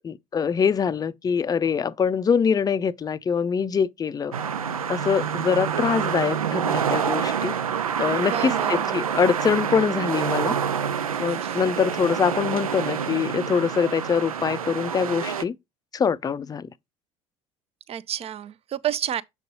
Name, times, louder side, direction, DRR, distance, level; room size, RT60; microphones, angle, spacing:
voice 1, 0.0-4.3 4.9-7.5 8.0-10.6 11.2-15.5 15.9-16.7, left 6 dB, 20° left, 0.5 m, -24 dB
sound 1, 4.3-15.4, right 8 dB, 80° right, 0.5 m, -27 dB
voice 2, 8.3-9.0 11.3-11.6 17.9-19.2, right 10 dB, 35° right, 0.6 m, -30 dB
7.5 x 5.3 x 2.7 m
figure-of-eight pair, 60°, 18 cm